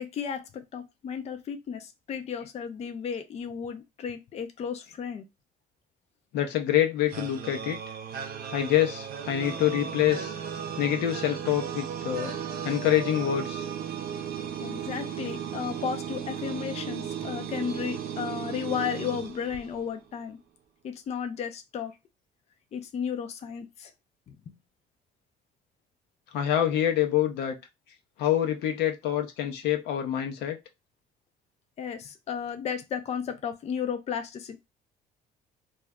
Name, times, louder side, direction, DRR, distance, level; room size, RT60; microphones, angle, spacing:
voice 1, 0.0-5.3 14.6-20.4 20.8-21.9 22.7-23.9 24.3-24.6 31.8-34.6, left 7 dB, 40° left, 7 dB, 0.4 m, -34 dB
voice 2, 6.3-7.8 8.5-10.3 10.8-12.3 12.6-13.7 26.3-27.6 28.2-30.6, left 11 dB, 80° left, 4 dB, 0.6 m, -26 dB
sound 1, 7.1-20.0, right 8 dB, 60° right, 0.6 m, -35 dB
2.3 x 2.0 x 3.4 m, 0.22 s
cardioid pair, 110°, 17 cm